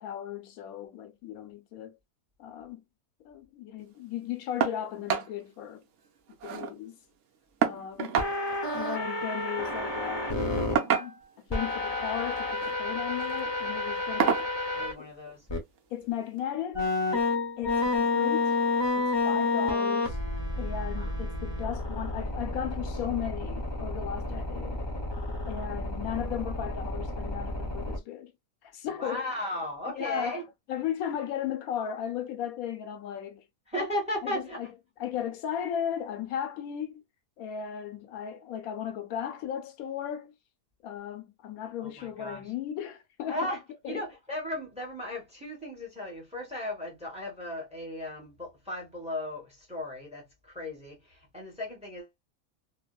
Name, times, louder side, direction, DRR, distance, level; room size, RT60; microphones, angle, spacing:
voice 1, 0.0-2.0 2.4-2.8 3.2-5.8 6.4-7.0 7.6-8.1 8.7-10.3 10.7-14.4 15.0-15.1 15.9-16.9 17.6-18.6 19.0-20.2 20.6-24.8 25.5-28.3 28.6-29.6 29.9-30.4 30.7-33.4 34.2-34.7 35.0-37.0 37.4-40.3 40.8-43.5 43.8-44.0, left 9 dB, 80° left, 1.0 m, -36 dB
sound 1, 4.6-4.8 5.1-5.3 5.7-5.8 6.0-6.7 7.6-8.3 9.6-9.8 10.7-11.4 12.4-12.8 13.2-13.4 14.2-14.5 15.8-15.9 16.4-16.5, right 8 dB, 65° right, 0.8 m, -28 dB
sound 2, 8.2-10.7 11.5-14.9 15.5-15.6 16.7-28.0, left 3 dB, 25° left, 0.6 m, -30 dB
voice 2, 14.7-15.4 21.0-21.2 29.0-30.4 33.7-34.7 41.8-42.5 43.3-43.6 43.9-52.3, left 1 dB, 5° right, 0.8 m, -36 dB
2.9 x 2.0 x 2.2 m
omnidirectional pair, 1.5 m